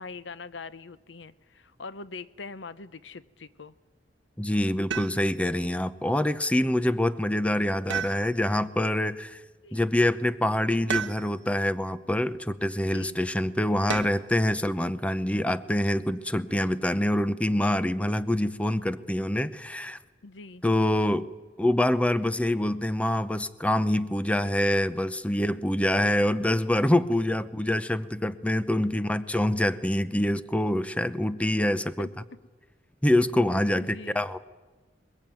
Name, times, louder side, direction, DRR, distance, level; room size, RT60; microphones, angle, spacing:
voice 1, 0.0-3.7 9.6-9.8 12.9-13.2 20.2-20.6 32.0-32.4 33.8-34.2, left 4 dB, 85° left, 16 dB, 0.8 m, -43 dB
voice 2, 4.4-9.4 9.7-20.0 20.6-21.3 21.6-32.1 33.0-34.4, left 1 dB, 5° left, 13 dB, 0.7 m, -25 dB
sound 1, 4.9-5.5 7.9-8.7 10.9-11.6 13.9-14.4 16.1-16.7, right 6 dB, 80° right, 1.3 m, -34 dB
22.5 x 21.5 x 9.0 m, 1.3 s
head